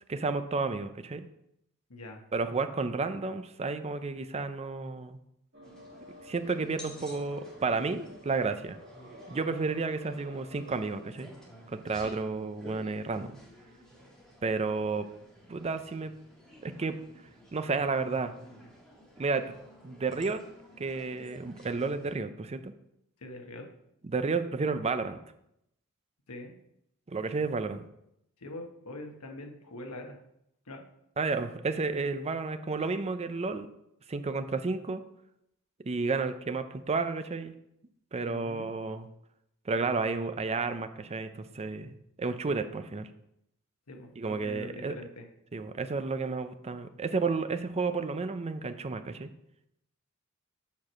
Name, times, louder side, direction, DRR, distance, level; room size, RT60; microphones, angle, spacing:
voice 1, 0.1-1.3 2.3-5.2 6.3-8.8 9.3-11.3 11.7-13.3 14.4-15.1 15.5-16.1 16.6-17.0 17.5-18.3 19.2-19.6 19.8-20.4 20.8-22.7 24.0-25.2 27.1-27.8 31.2-33.7 34.1-35.0 35.8-37.5 38.1-39.1 39.7-43.1 44.2-45.0 45.5-49.3, right 4 dB, 30° right, 10 dB, 0.5 m, -31 dB
voice 2, 1.9-2.2 23.2-23.7 26.3-26.6 28.4-30.2 30.7-30.8 38.2-38.7 43.9-45.2, left 2 dB, 80° left, 3 dB, 1.2 m, -43 dB
sound 1, 5.5-10.9, equal, 50° right, 1.7 m, -51 dB
sound 2, 5.6-22.2, equal, 5° left, 1.6 m, -53 dB
7.3 x 4.6 x 6.2 m, 0.80 s
head